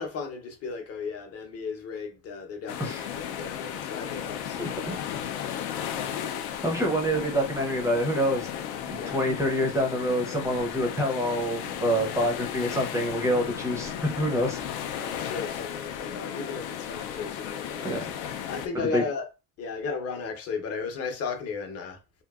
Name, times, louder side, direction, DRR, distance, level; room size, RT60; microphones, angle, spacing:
voice 1, 0.0-5.1 8.9-9.2 14.6-19.3 19.6-22.0, left 5 dB, 40° left, 0.7 m, -35 dB
sound 1, 2.7-18.7, left 9 dB, 80° left, 0.6 m, -35 dB
voice 2, 4.6-4.9 6.6-14.6 17.8-18.1 18.7-19.0, equal, 10° right, 0.5 m, -27 dB
2.9 x 2.6 x 2.3 m
cardioid pair, 145°, 37 cm